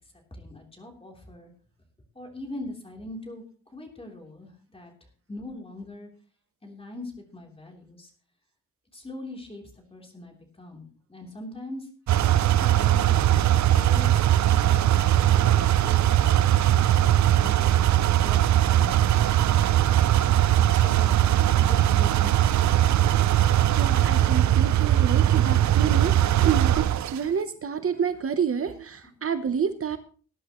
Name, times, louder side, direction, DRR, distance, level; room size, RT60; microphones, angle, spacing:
voice 1, 0.3-1.5 2.1-3.4 3.7-4.9 5.3-6.1 6.6-8.1 8.9-9.6 9.9-11.9 12.6-14.2 14.4-15.0 15.3-16.8 17.2-20.1 20.7-21.2 21.6-22.9, left 1 dB, 20° left, 1 dB, 3.4 m, -42 dB
sound 1, 12.1-27.2, right 12 dB, 65° right, 0.5 m, -20 dB
voice 2, 23.8-26.1 26.4-30.0, right 7 dB, 45° right, 9 dB, 0.8 m, -28 dB
19.5 x 11.0 x 3.0 m, 0.41 s
wide cardioid pair, 140°, 31 cm